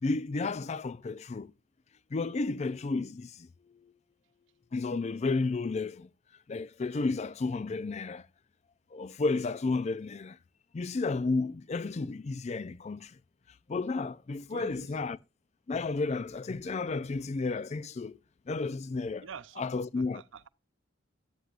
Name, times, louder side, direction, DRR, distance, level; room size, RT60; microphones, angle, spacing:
voice 1, 0.0-1.5 2.1-3.5 4.7-6.1 6.5-8.3 8.9-10.4 10.7-13.1 13.7-15.2 15.7-18.2 18.5-19.3 19.6-20.2, left 3 dB, 35° left, 0.4 m, -32 dB
voice 2, 14.5-15.1 19.2-19.7 20.0-20.5, right 6 dB, 65° right, 0.5 m, -47 dB
11.5 x 9.4 x 2.4 m
head